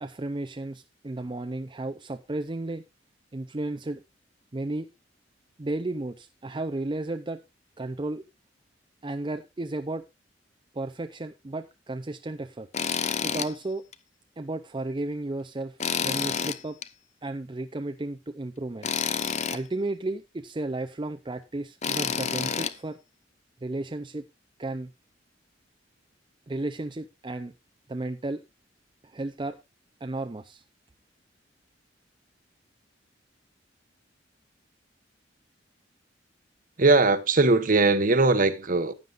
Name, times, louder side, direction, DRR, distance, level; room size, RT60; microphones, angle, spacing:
voice 1, 0.0-2.8 3.3-4.0 4.5-4.9 5.6-7.4 7.8-8.2 9.0-10.0 10.7-12.7 13.2-13.8 14.4-16.8 17.2-18.9 19.5-23.0 23.6-24.3 24.6-24.9 26.5-27.5 27.9-28.4 29.0-29.6 30.0-30.6, right 2 dB, 25° right, 0.5 m, -33 dB
Tools, 12.7-13.5 13.9-14.0 15.8-16.9 18.8-19.6 21.8-22.7, left 7 dB, 35° left, 0.6 m, -28 dB
voice 2, 36.8-38.9, right 3 dB, 45° right, 1.0 m, -20 dB
15.0 x 9.4 x 2.5 m
head